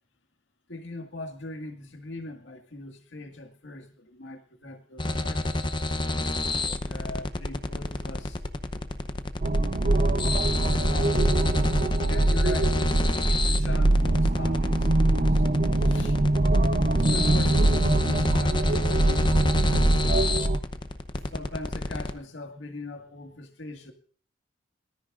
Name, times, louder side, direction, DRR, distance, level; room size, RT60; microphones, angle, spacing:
voice 1, 0.7-6.0 6.2-6.3 6.8-8.4 10.6-11.5 12.1-12.8 13.2-15.4 15.8-16.2 17.0-20.5 21.3-23.9, left 2 dB, 75° left, 4 dB, 1.9 m, -41 dB
sound 1, 5.0-22.1, left 2 dB, 25° left, 0.7 m, -29 dB
sound 2, 9.4-20.6, right 2 dB, 45° right, 0.7 m, -23 dB
24.5 x 13.5 x 2.5 m, 0.41 s
head